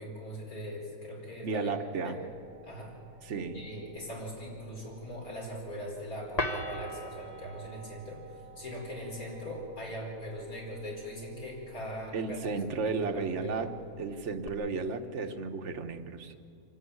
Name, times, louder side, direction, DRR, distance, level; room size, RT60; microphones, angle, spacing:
voice 1, 0.0-1.7 2.0-2.2 2.6-2.9 3.5-12.5 12.9-13.0 13.3-13.7, equal, 75° left, -3 dB, 5.3 m, -40 dB
voice 2, 1.4-2.2 3.2-3.6 12.1-13.7 14.0-16.4, right 4 dB, 55° right, 8 dB, 1.3 m, -33 dB
sound 1, 2.3-14.5, left 1 dB, 25° left, 1.4 m, -44 dB
26.0 x 11.5 x 9.6 m, 2.6 s
omnidirectional pair, 1.5 m